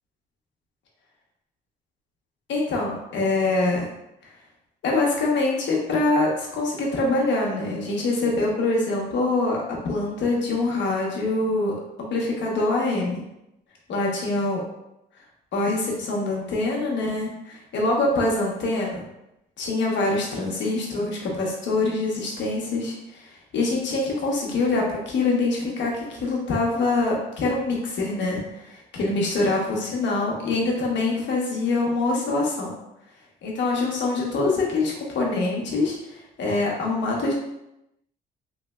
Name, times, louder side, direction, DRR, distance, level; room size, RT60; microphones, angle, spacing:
voice 1, 2.5-3.9 4.8-11.7 12.1-13.2 13.9-14.6 15.5-19.0 19.6-32.7 33.4-37.3, left 2 dB, 65° left, -2 dB, 1.0 m, -24 dB
3.3 x 3.1 x 2.3 m, 0.87 s
cardioid pair, 90°, 20 cm